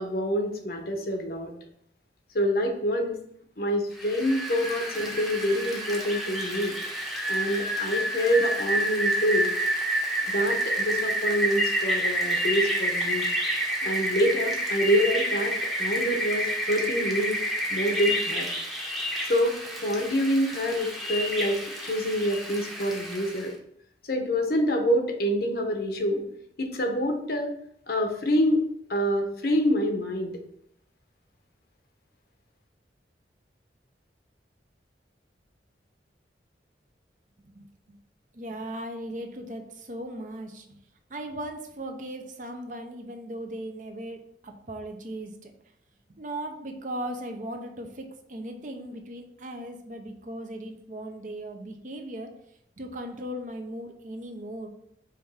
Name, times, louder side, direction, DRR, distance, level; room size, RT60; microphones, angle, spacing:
voice 1, 0.0-1.6 2.3-3.2 3.6-6.8 7.3-9.5 10.3-13.3 13.8-17.4 17.7-18.5 19.3-19.6 19.8-23.5 24.0-26.2 26.6-27.5 27.9-30.4, equal, 60° left, 4 dB, 0.9 m, -26 dB
Rain, 4.0-23.5, right 1 dB, ahead, 0.8 m, -29 dB
voice 2, 38.3-40.8 41.1-45.5 46.2-52.3 52.8-54.7, right 1 dB, 45° right, 4 dB, 0.8 m, -37 dB
5.1 x 3.4 x 5.5 m, 0.71 s
head